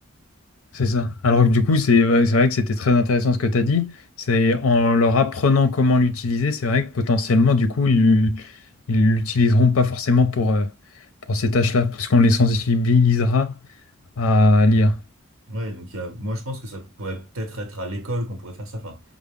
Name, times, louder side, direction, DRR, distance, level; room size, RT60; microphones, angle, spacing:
voice 1, 0.7-4.0 4.3-8.5 8.9-10.7 11.3-13.5 14.2-15.0, left 3 dB, 80° left, 0.5 m, -18 dB
voice 2, 15.5-19.0, equal, 70° right, 0.9 m, -31 dB
4.6 x 2.0 x 3.4 m
head